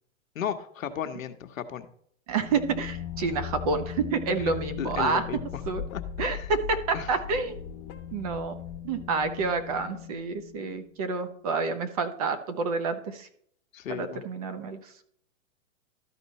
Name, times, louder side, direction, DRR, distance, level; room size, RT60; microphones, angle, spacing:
voice 1, 0.3-1.9 4.8-5.5 5.9-6.5 6.9-7.2 13.7-14.2, left 9 dB, 75° left, 8 dB, 1.3 m, -35 dB
sound 1, 2.3-10.9, left 9 dB, 35° left, 1.1 m, -38 dB
voice 2, 2.3-5.2 5.7-5.8 6.2-7.6 8.1-8.5 8.8-13.3 13.9-14.9, right 4 dB, 30° right, 9 dB, 0.7 m, -29 dB
13.0 x 4.4 x 4.2 m, 0.64 s
hypercardioid pair, 160°, 41 cm